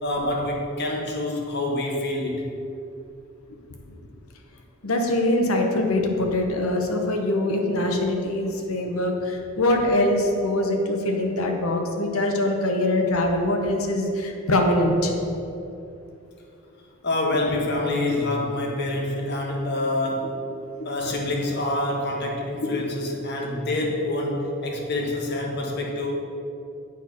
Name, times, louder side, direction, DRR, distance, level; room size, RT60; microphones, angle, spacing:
voice 1, 0.0-2.4 17.0-20.3 20.8-26.1, left 1 dB, 50° left, 0 dB, 1.2 m, -26 dB
voice 2, 4.8-15.1 20.8-20.9 22.7-22.8, left 1 dB, 80° left, 2 dB, 0.9 m, -23 dB
8.5 x 4.4 x 5.8 m, 2.7 s
head